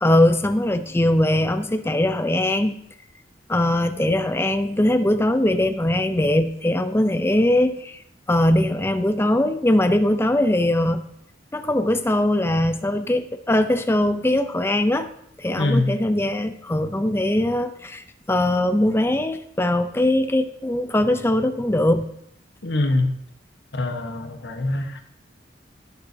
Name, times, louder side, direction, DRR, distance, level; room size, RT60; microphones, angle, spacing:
voice 1, 0.0-2.8 3.5-8.0 8.3-11.0 11.5-15.1 15.4-22.1, left 1 dB, 15° left, 0.5 m, -21 dB
voice 2, 15.6-16.0 22.6-23.2 23.7-25.0, left 2 dB, 75° left, 1.2 m, -23 dB
16.0 x 6.9 x 2.7 m
head